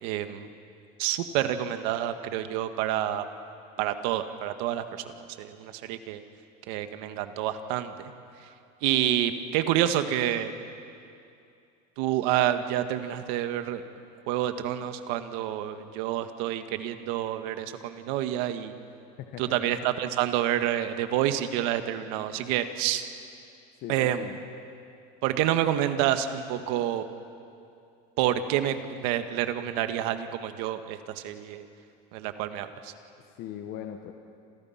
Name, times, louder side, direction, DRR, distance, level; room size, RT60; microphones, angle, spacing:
voice 1, 0.0-0.5 1.0-3.2 3.8-4.8 5.4-6.2 6.7-8.1 8.8-10.5 12.0-13.8 14.3-18.7 19.4-23.0 23.9-24.2 25.2-27.0 28.2-31.6 32.1-32.9, right 12 dB, 60° right, 8 dB, 1.7 m, -28 dB
voice 2, 23.8-24.4 33.2-34.1, left 10 dB, 45° left, 5 dB, 1.4 m, -39 dB
29.5 x 27.5 x 5.9 m, 2.5 s
cardioid pair, 160°, 20 cm